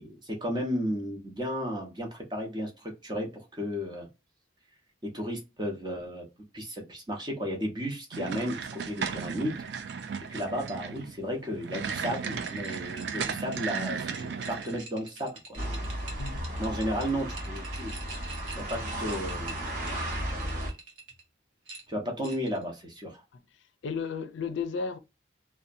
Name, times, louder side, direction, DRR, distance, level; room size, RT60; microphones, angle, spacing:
voice 1, 0.0-4.1 5.0-6.3 6.5-9.6 10.3-15.8 16.6-19.6 21.9-23.2, equal, 25° right, 0.7 m, -34 dB
sound 1, 8.1-14.8, right 6 dB, 65° right, 0.3 m, -35 dB
sound 2, 12.1-21.2 21.7-22.6, right 3 dB, 90° right, 0.9 m, -46 dB
sound 3, 15.5-20.7, right 1 dB, 45° right, 1.0 m, -34 dB
voice 2, 16.2-16.5 23.8-25.0, left 5 dB, 85° left, 0.4 m, -33 dB
2.7 x 2.1 x 2.5 m
head